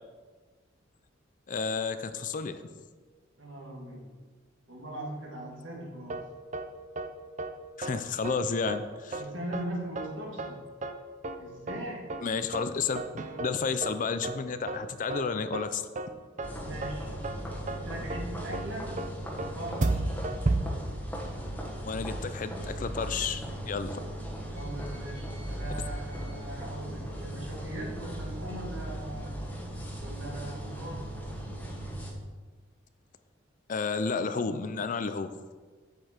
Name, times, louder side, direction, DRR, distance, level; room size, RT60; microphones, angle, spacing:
voice 1, 1.5-2.7 7.8-9.2 12.2-13.0 13.4-15.8 21.8-24.0 33.7-35.3, left 5 dB, 40° left, 11 dB, 0.5 m, -31 dB
voice 2, 3.4-4.1 4.7-6.3 9.2-10.7 11.4-12.1 16.6-17.2 17.7-19.0 19.5-20.2 24.5-29.5 30.0-31.2, right 1 dB, 75° right, -1 dB, 2.1 m, -40 dB
sound 1, 6.1-6.2 6.5-6.6 7.0-7.1 7.4-7.5 7.8-7.9 8.2-8.4 8.7-8.8 9.1-9.2 9.5-9.6 10.0-10.1 10.4-10.5 10.8-10.9 11.2-11.4 11.7-11.8 12.1-12.2 12.5-12.6 13.0-13.5 13.8-13.9 14.2-14.4 14.7-14.8 15.1-15.2 15.5-15.6 16.0-16.1 16.4-16.5 16.8-16.9 17.2-17.4 17.7-17.8 18.1-18.2 18.5-18.6 19.0-19.1 19.4-19.5 19.8-20.6, right 2 dB, 40° right, 0.6 m, -31 dB
sound 2, 16.4-32.1, right 1 dB, 10° left, 1.3 m, -38 dB
7.9 x 7.8 x 4.4 m, 1.4 s
head